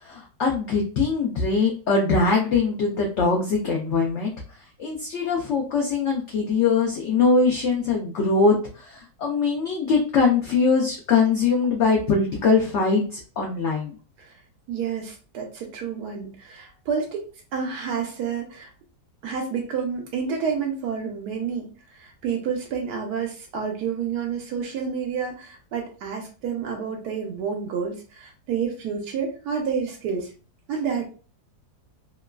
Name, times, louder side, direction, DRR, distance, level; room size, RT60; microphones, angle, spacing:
voice 1, 0.0-4.3 4.8-13.9, left 4 dB, 75° left, 0 dB, 0.6 m, -22 dB
voice 2, 14.7-17.3 17.5-18.7 19.2-21.7 21.9-30.3 30.7-31.0, right 6 dB, 80° right, 1 dB, 1.1 m, -29 dB
2.9 x 2.3 x 2.2 m, 0.37 s
omnidirectional pair, 1.7 m